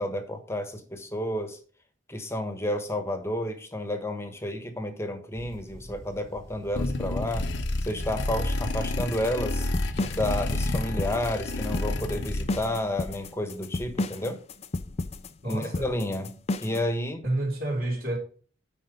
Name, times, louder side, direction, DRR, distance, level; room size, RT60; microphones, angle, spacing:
voice 1, 0.0-1.6 2.1-7.5 7.8-9.7 10.1-14.4 15.4-17.2, left 1 dB, 15° left, 1.2 m, -31 dB
sound 1, 5.3-11.6, equal, 15° right, 1.7 m, -48 dB
sound 2, 6.8-12.8, left 1 dB, 65° left, 0.9 m, -30 dB
sound 3, 9.0-16.9, left 2 dB, 35° left, 0.5 m, -33 dB
voice 2, 15.4-15.9 17.2-18.2, right 1 dB, 50° right, 3.2 m, -29 dB
9.6 x 4.3 x 5.3 m
head